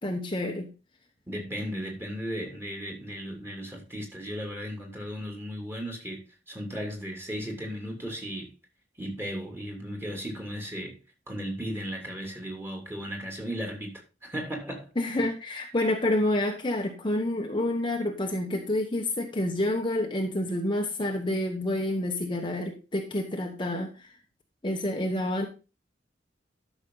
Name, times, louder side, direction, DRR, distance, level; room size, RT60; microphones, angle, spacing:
voice 1, 0.0-0.7 15.0-24.1 24.6-25.5, left 1 dB, 25° left, 1.1 m, -28 dB
voice 2, 1.3-6.2 6.5-8.5 9.0-11.0 11.3-14.9, equal, 15° right, 2.9 m, -36 dB
12.5 x 6.2 x 3.9 m
head